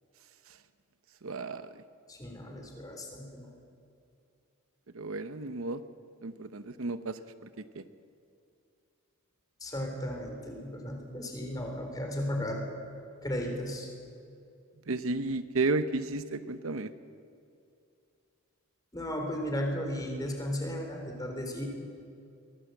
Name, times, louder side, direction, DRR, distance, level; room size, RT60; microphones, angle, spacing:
voice 1, 1.2-1.6 4.9-5.8 6.2-7.2 7.7-7.8 14.9-16.9, right 3 dB, 70° right, 11 dB, 0.8 m, -32 dB
voice 2, 2.1-3.5 9.6-12.6 13.2-13.9 18.9-21.6, equal, 15° left, 2 dB, 3.7 m, -35 dB
23.5 x 17.5 x 7.9 m, 2.5 s
head